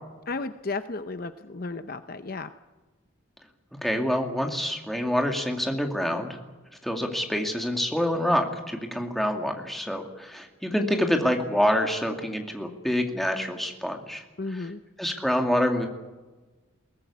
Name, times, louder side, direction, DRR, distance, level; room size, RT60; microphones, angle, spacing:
voice 1, 0.3-2.5 14.4-14.8, left 3 dB, 45° left, 10 dB, 0.7 m, -33 dB
voice 2, 3.8-6.4 6.8-14.2 14.5-14.7 15.0-15.9, equal, ahead, 3 dB, 2.3 m, -26 dB
22.0 x 18.0 x 8.4 m, 1.2 s
head